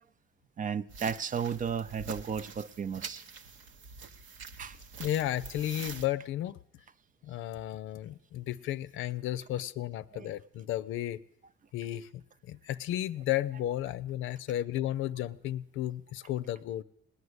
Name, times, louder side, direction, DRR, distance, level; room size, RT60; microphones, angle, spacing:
voice 1, 0.6-3.2 4.6-4.8 10.1-10.3, right 7 dB, 40° right, 0.5 m, -34 dB
sound 1, 0.9-6.1, right 5 dB, 80° right, 1.1 m, -45 dB
voice 2, 5.0-6.6 7.2-11.2 11.7-16.8, left 13 dB, 85° left, 0.6 m, -33 dB
19.0 x 9.6 x 8.0 m
cardioid pair, 90°, 20 cm